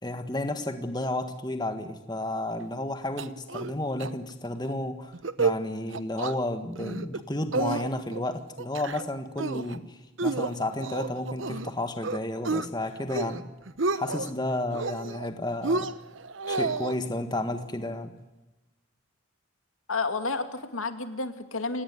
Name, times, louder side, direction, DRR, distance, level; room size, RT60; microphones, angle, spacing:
voice 1, 0.0-13.5 13.9-15.9 16.5-18.1, left 1 dB, 20° left, 7 dB, 1.6 m, -32 dB
sound 1, 3.2-3.7 4.0-4.1 4.5-4.7 5.1-5.6 5.9-6.3 6.8-7.2 7.5-8.2 8.6-9.0 9.4-9.8 10.2-11.7 12.0-12.7 13.0-13.4 13.7-14.3 14.7-15.3 15.6-16.9, right 3 dB, 70° right, 1.1 m, -30 dB
voice 2, 19.9-21.8, left 3 dB, 85° left, 8 dB, 2.4 m, -31 dB
28.5 x 18.0 x 9.5 m, 1.1 s
head